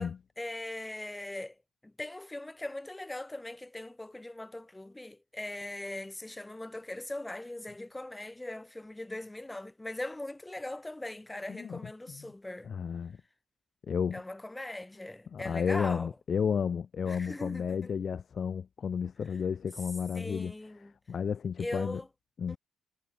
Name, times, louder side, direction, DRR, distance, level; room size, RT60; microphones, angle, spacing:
voice 1, 0.0-1.6 1.8-12.7 14.1-16.1 17.0-17.9 20.1-20.9 21.6-22.1 22.5-22.6, left 1 dB, 10° left, 1.5 m, -40 dB
voice 2, 11.5-11.8 12.1-12.3 12.6-13.2 13.9-14.2 15.3-20.5 21.1-22.0 22.4-22.6, left 7 dB, 50° left, 0.4 m, -32 dB
cardioid pair, 90°, 0 cm